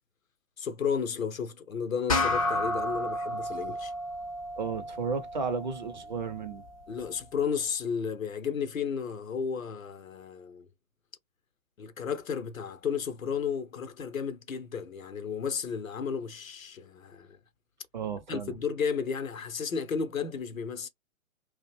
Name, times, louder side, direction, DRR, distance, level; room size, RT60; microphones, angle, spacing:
voice 1, 0.6-3.9 6.9-10.7 11.8-17.4 18.3-20.9, left 6 dB, 75° left, 0.7 m, -33 dB
sound 1, 2.1-6.9, left 1 dB, 25° left, 0.4 m, -32 dB
voice 2, 4.6-6.6 17.9-18.6, right 5 dB, 35° right, 0.4 m, -33 dB
2.5 x 2.1 x 2.9 m
figure-of-eight pair, 125°, 41 cm